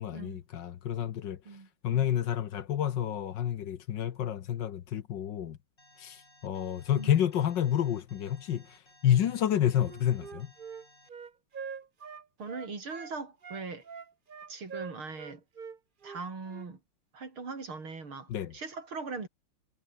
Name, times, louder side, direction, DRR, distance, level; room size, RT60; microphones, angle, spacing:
voice 1, 0.0-1.4 1.8-5.6 6.0-8.6 9.0-10.5 18.3-18.5, left 10 dB, 60° left, 1.6 m, -29 dB
voice 2, 1.4-2.1 7.0-7.1 12.4-13.8 14.5-15.4 16.0-16.8 17.1-19.3, right 4 dB, 75° right, 5.0 m, -40 dB
Alarm, 5.8-11.1, left 1 dB, 25° left, 7.8 m, -60 dB
Wind instrument woodwind instrument, 9.7-13.1 13.4-16.7, right 6 dB, 45° right, 0.7 m, -44 dB
omnidirectional pair, 2.3 m